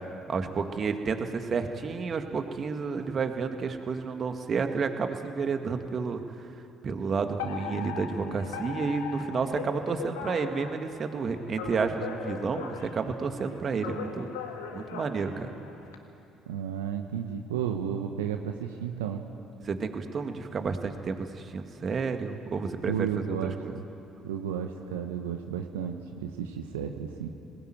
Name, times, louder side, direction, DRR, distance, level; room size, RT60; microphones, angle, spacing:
voice 1, 0.3-6.5 6.8-14.3 14.7-15.5 19.6-23.7, right 5 dB, 45° right, 6 dB, 2.0 m, -31 dB
Alarm, 7.4-16.0, left 7 dB, 80° left, 1.7 m, -39 dB
voice 2, 16.5-19.2 22.9-23.8 24.2-27.3, right 8 dB, 85° right, 4 dB, 1.0 m, -33 dB
20.5 x 19.5 x 9.2 m, 2.8 s
hypercardioid pair, 50°, 0 cm